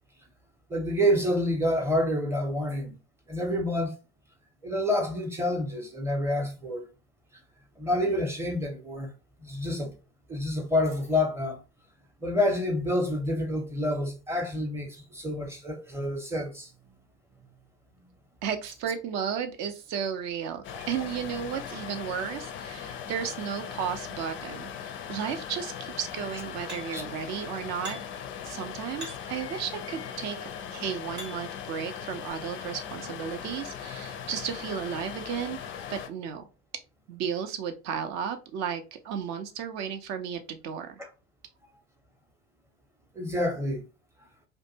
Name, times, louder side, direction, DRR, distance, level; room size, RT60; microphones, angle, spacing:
voice 1, 0.7-3.0 3.3-4.0 4.6-6.8 7.8-9.1 9.4-9.9 10.3-11.6 12.2-17.0 20.7-20.8 26.9-27.0 41.0-41.1 43.1-43.8, left 1 dB, 5° right, 0.7 m, -28 dB
voice 2, 18.4-28.0 28.4-30.4 30.7-35.6 35.9-36.4 37.1-41.0, right 7 dB, 50° right, 0.5 m, -34 dB
sound 1, 20.6-36.1, left 8 dB, 35° left, 0.4 m, -39 dB
sound 2, 26.7-27.1 27.8-28.3 29.0-29.5 30.3-31.6 32.3-32.4, equal, 75° right, 1.0 m, -44 dB
2.5 x 2.2 x 2.7 m
figure-of-eight pair, 70°, 35 cm